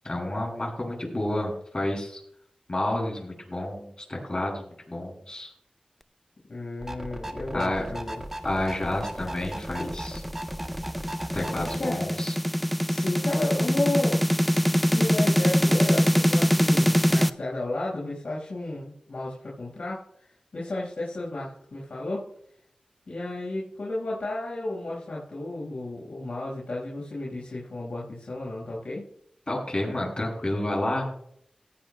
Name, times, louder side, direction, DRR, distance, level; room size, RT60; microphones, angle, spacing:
voice 1, 0.0-2.2 2.7-5.5 7.5-7.8 8.4-10.2 11.3-12.3 29.5-31.1, left 1 dB, 35° left, -1 dB, 6.6 m, -30 dB
voice 2, 6.5-8.2 11.8-12.0 12.9-14.2 14.6-20.0 20.5-22.3 23.1-29.0, left 2 dB, 75° left, -5 dB, 4.9 m, -32 dB
sound 1, 6.8-11.8, right 1 dB, 20° right, 1.5 m, -37 dB
sound 2, 9.2-17.3, equal, 5° left, 0.6 m, -23 dB
18.0 x 15.0 x 2.2 m, 0.70 s
wide cardioid pair, 55°, 2 cm